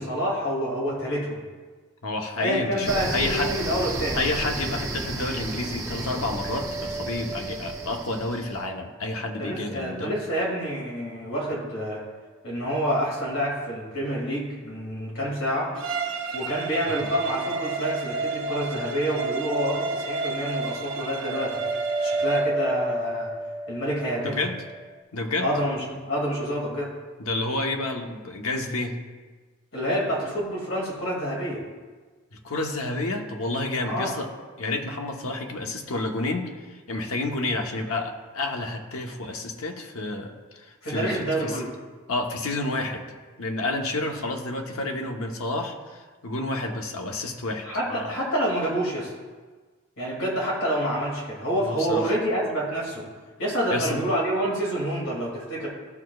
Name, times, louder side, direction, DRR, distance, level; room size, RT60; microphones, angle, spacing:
voice 1, 0.0-1.4 2.4-4.2 9.4-12.0 12.4-15.8 16.3-21.6 22.0-23.3 23.7-24.4 25.4-26.9 29.7-31.6 33.8-34.1 40.8-41.7 47.6-49.1 50.0-53.1 53.4-55.7, equal, 65° left, -3 dB, 2.3 m, -27 dB
voice 2, 2.0-3.5 4.1-10.2 17.0-17.1 24.2-24.6 25.1-25.5 27.2-29.0 32.3-34.3 34.6-41.6 42.1-43.0 43.4-48.2 51.6-52.1 53.7-54.1, left 2 dB, 80° left, 3 dB, 0.9 m, -30 dB
sound 1, 2.8-8.7, right 2 dB, 15° right, 0.5 m, -33 dB
sound 2, 6.3-9.5 9.7-9.8 17.0-25.0, right 2 dB, 45° left, 2.3 m, -31 dB
Bowed string instrument, 15.7-22.6, right 5 dB, 60° right, 1.1 m, -35 dB
14.5 x 6.3 x 2.4 m, 1.4 s
head